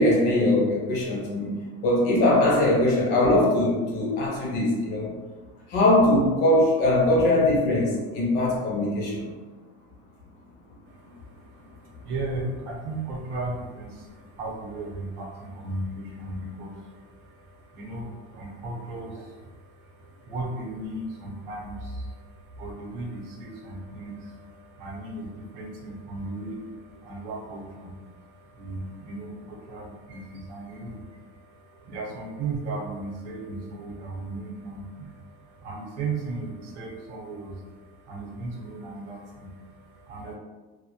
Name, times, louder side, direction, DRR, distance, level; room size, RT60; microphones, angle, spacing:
voice 1, 0.0-5.2 5.7-9.3, left 1 dB, 35° left, -4 dB, 0.4 m, -21 dB
voice 2, 10.9-40.3, right 2 dB, 60° right, -2 dB, 0.7 m, -36 dB
2.1 x 2.1 x 2.8 m, 1.3 s
cardioid pair, 180°, 32 cm